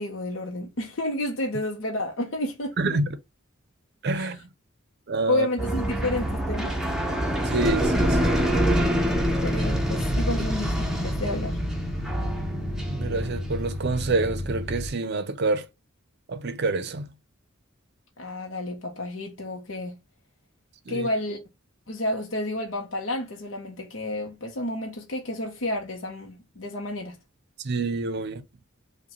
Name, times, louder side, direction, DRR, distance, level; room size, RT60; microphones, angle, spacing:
voice 1, 0.0-2.8 4.1-4.3 5.3-6.7 9.4-11.6 18.2-20.0 20.9-21.4 21.9-27.2, left 1 dB, 65° left, 0.7 m, -30 dB
voice 2, 4.0-4.4 5.1-5.5 7.5-8.4 12.9-15.7 16.3-17.1 20.9-21.1 27.6-28.4, right 3 dB, 55° right, 0.6 m, -27 dB
sound 1, 5.6-14.9, equal, 5° right, 0.6 m, -26 dB
5.0 x 2.2 x 2.9 m
head